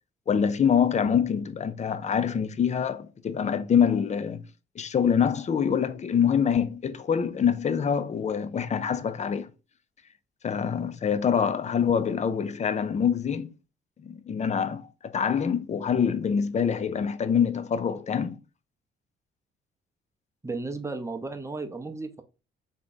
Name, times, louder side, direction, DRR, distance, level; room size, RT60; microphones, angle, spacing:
voice 1, 0.3-4.4 4.8-9.5 10.4-13.5 14.0-14.9 15.1-18.4, left 7 dB, 35° left, 0.5 m, -25 dB
voice 2, 20.4-22.2, right 3 dB, 15° right, 0.8 m, -34 dB
3.7 x 3.2 x 4.0 m
cardioid pair, 90°, 20 cm